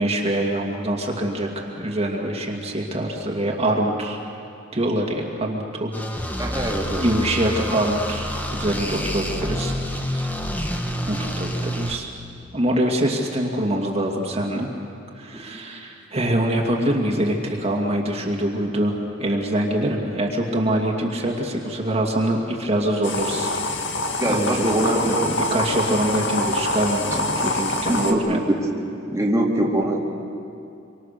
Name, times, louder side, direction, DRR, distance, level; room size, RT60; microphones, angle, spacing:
voice 1, 0.0-4.2 4.7-5.9 6.6-6.7 7.0-9.7 10.0-10.3 11.1-12.1 12.5-14.7 15.2-23.5 24.3-28.4, right 1 dB, 30° right, 0 dB, 2.3 m, -24 dB
sound 1, 5.9-12.0, equal, 10° left, 1.6 m, -28 dB
voice 2, 6.4-7.1 15.3-15.6 24.2-25.0 27.6-28.4 28.8-30.0, right 1 dB, 15° right, -3 dB, 2.4 m, -24 dB
sound 2, 23.0-28.1, left 2 dB, 65° left, 2.1 m, -25 dB
26.5 x 24.5 x 6.8 m, 2.6 s
head